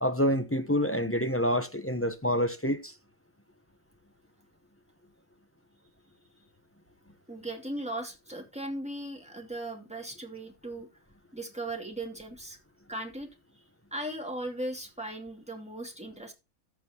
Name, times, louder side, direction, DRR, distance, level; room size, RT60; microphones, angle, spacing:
voice 1, 0.0-2.9, equal, 15° left, 0.6 m, -27 dB
voice 2, 7.3-10.9 11.3-12.6 12.9-13.6 13.9-16.3, right 1 dB, 5° right, 2.5 m, -38 dB
13.5 x 7.3 x 3.0 m
omnidirectional pair, 1.5 m